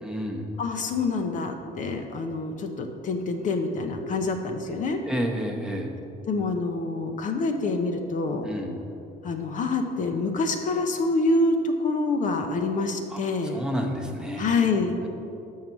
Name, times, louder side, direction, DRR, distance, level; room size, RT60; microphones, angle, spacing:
voice 1, 0.0-0.5 5.1-5.9 8.4-8.8 13.1-14.5 15.0-15.1, equal, 5° right, 1 dB, 0.8 m, -30 dB
voice 2, 0.6-5.0 6.3-8.5 9.2-13.6 14.4-15.0, left 3 dB, 50° left, 5 dB, 0.7 m, -26 dB
6.5 x 5.5 x 6.0 m, 2.8 s
cardioid pair, 110°, 17 cm